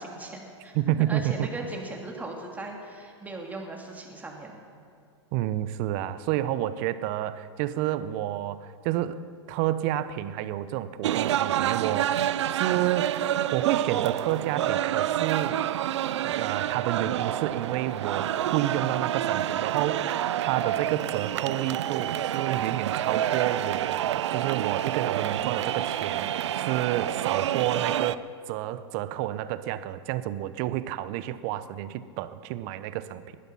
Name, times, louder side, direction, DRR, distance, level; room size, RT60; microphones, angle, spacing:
voice 1, 0.0-0.7 1.1-4.6, right 2 dB, 10° right, 0 dB, 2.8 m, -38 dB
voice 2, 0.7-1.5 5.3-9.2 9.5-13.1 13.5-15.6 16.2-28.2 28.5-33.4, right 13 dB, 50° right, 14 dB, 0.9 m, -30 dB
sound 1, 11.0-28.2, right 11 dB, 75° right, 0.5 m, -28 dB
20.0 x 12.0 x 5.7 m, 2.3 s
hypercardioid pair, 110°, 15 cm